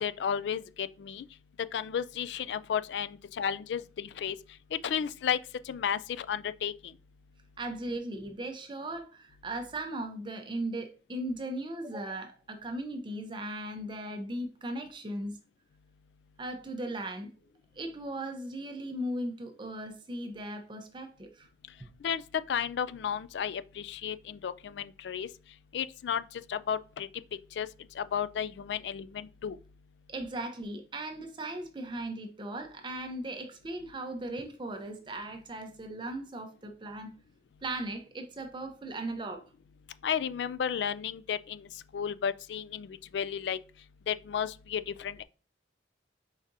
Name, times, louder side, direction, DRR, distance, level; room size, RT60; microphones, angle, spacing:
voice 1, 0.0-1.2 1.7-4.4 4.7-5.4 5.7-6.7 22.0-22.2 22.5-25.3 25.7-26.2 26.5-27.1 27.6-27.7 28.0-29.6 40.0-41.6 41.9-42.9 43.1-43.6 44.1-45.2, left 8 dB, 75° left, 0.3 m, -33 dB
voice 2, 7.6-15.4 16.4-17.3 17.8-21.5 30.1-37.1 37.6-39.4, right 1 dB, 25° right, 0.5 m, -37 dB
4.6 x 4.0 x 2.6 m
head